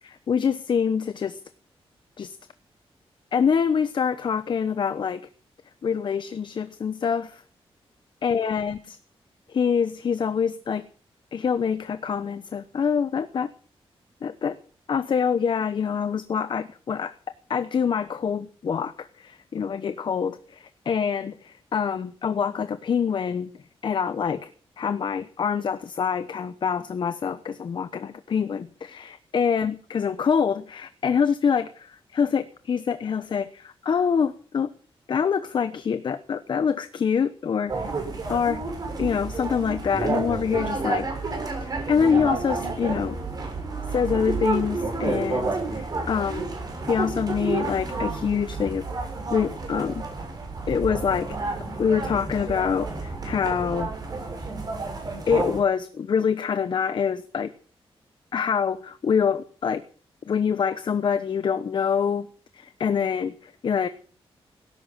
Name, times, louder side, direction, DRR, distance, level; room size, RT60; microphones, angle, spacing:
voice 1, 0.3-1.4 2.2-2.4 3.3-5.2 5.8-7.4 8.2-9.0 9.5-10.8 11.3-13.5 14.2-14.5 14.9-17.1 17.5-23.5 23.8-24.5 24.8-34.7 35.1-37.9 38.3-38.6 39.0-41.1 41.6-43.2 43.9-46.5 46.9-48.8 49.3-50.1 50.7-51.3 51.8-53.9 55.3-57.5 58.3-59.8 60.3-62.3 62.6-63.9, left 6 dB, 50° left, 12 dB, 1.0 m, -25 dB
sound 1, 37.7-55.6, right 3 dB, 40° right, 6.8 m, -30 dB
17.5 x 11.0 x 7.5 m, 0.43 s
wide cardioid pair, 155°, 10 cm